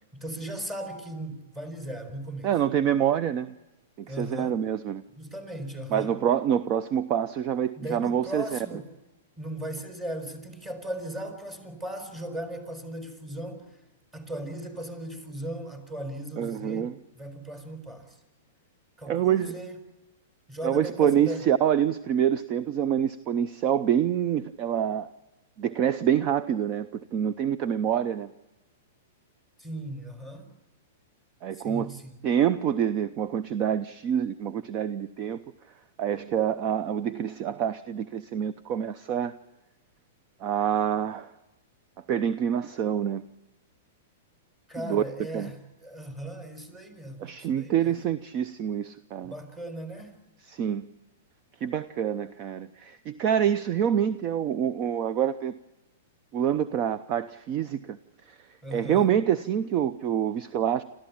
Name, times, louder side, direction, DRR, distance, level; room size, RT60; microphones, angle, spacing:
voice 1, 0.1-2.6 4.1-4.6 5.2-6.1 7.8-8.9 9.4-13.8 14.1-18.2 19.0-19.8 20.5-21.5 29.6-30.5 31.5-32.2 44.7-47.9 49.2-50.2 58.6-59.1, right 1 dB, 15° right, 7 dB, 4.5 m, -37 dB
voice 2, 2.4-3.5 4.0-5.0 5.9-8.8 16.4-16.9 19.0-19.5 20.6-25.1 25.6-28.3 31.4-31.9 32.2-35.4 36.0-39.3 40.4-41.3 42.1-43.2 44.8-45.0 45.3-45.5 47.2-49.3 50.4-50.9 51.6-55.6 56.3-58.0 58.3-58.4 58.7-60.8, right 9 dB, 40° right, 14 dB, 0.7 m, -26 dB
27.5 x 14.0 x 8.7 m, 1.1 s
hypercardioid pair, 115°, 0 cm